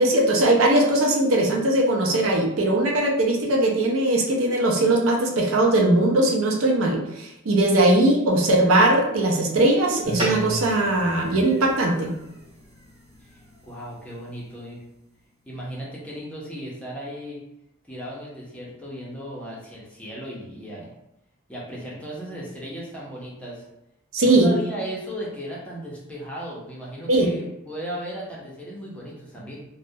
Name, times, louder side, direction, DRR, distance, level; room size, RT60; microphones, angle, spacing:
voice 1, 0.0-12.1 24.1-24.5 27.1-27.3, right 1 dB, 85° right, 0 dB, 0.5 m, -20 dB
sound 1, 10.0-14.7, equal, 30° right, 0.9 m, -34 dB
voice 2, 13.3-14.8 15.5-17.4 17.9-20.9 21.5-23.7 24.2-29.7, equal, 5° left, -5 dB, 0.6 m, -36 dB
2.3 x 2.0 x 2.6 m, 0.83 s
head